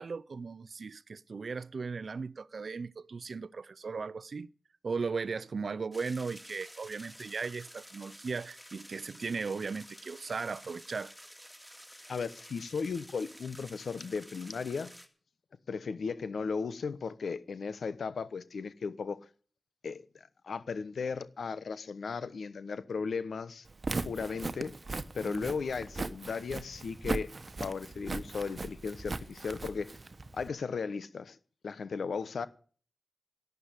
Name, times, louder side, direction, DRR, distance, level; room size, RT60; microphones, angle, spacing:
voice 1, 0.0-4.5 4.8-11.1 25.2-25.5, right 4 dB, 65° right, 0.6 m, -37 dB
sound 1, 5.9-15.1, equal, ahead, 2.5 m, -51 dB
voice 2, 12.1-14.9 15.7-19.2 19.8-23.7 24.0-24.7 25.1-27.3 27.6-29.9 30.3-31.4 31.6-32.5, left 5 dB, 80° left, 1.1 m, -36 dB
Walk footsteps, 23.7-30.5, right 3 dB, 45° right, 1.1 m, -38 dB
11.5 x 9.6 x 8.4 m
cardioid pair, 60°, 0 cm